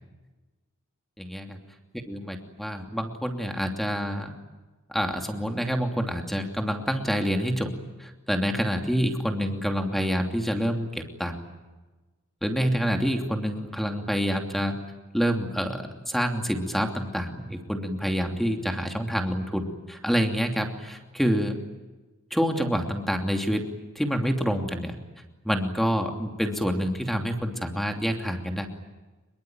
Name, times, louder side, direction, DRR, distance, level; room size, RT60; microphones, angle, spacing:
voice 1, 1.2-1.6 2.1-4.3 4.9-7.7 8.0-11.4 12.4-14.7 15.1-21.6 22.3-23.6 23.9-25.0 25.4-28.7, equal, ahead, 4 dB, 2.8 m, -27 dB
25.5 x 23.0 x 9.1 m, 1.2 s
head